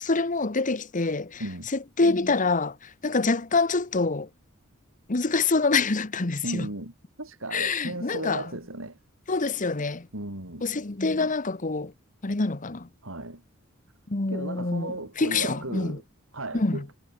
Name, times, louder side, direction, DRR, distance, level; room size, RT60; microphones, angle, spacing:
voice 1, 0.0-1.4 2.0-2.7 3.0-4.3 5.1-6.7 7.5-8.4 9.3-10.1 10.6-11.9 12.2-12.9 14.1-14.9 15.2-16.0 16.5-16.8, left 3 dB, 40° left, 1.1 m, -25 dB
voice 2, 1.4-1.7 6.4-9.0 10.1-10.7 13.0-13.4 14.3-16.0 16.3-16.9, right 2 dB, 85° right, 5.4 m, -36 dB
head